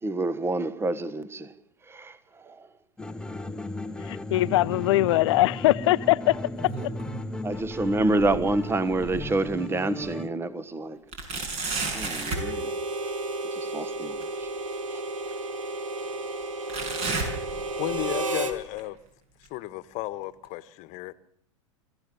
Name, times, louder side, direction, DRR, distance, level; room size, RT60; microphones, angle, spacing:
voice 1, 0.0-1.5 1.9-2.7 7.4-11.0 11.9-12.8 13.5-14.5 14.9-15.0, right 2 dB, 15° right, 1.3 m, -28 dB
sound 1, 3.0-10.3, left 2 dB, 5° left, 1.1 m, -36 dB
voice 2, 4.0-6.7, left 17 dB, 65° left, 0.7 m, -22 dB
sound 2, 6.3-7.3 7.6-9.5 10.0-10.1 11.1-12.5 14.2-14.3 15.2-15.3 16.7-18.1 18.4-18.8 19.5-19.6 20.4-20.5, right 3 dB, 40° right, 6.5 m, -33 dB
Harmonica, 12.2-18.6, right 2 dB, 90° right, 2.2 m, -32 dB
voice 3, 17.8-19.0 19.5-21.1, left 17 dB, 50° left, 1.3 m, -34 dB
24.5 x 15.0 x 7.1 m
hypercardioid pair, 100°, 16 cm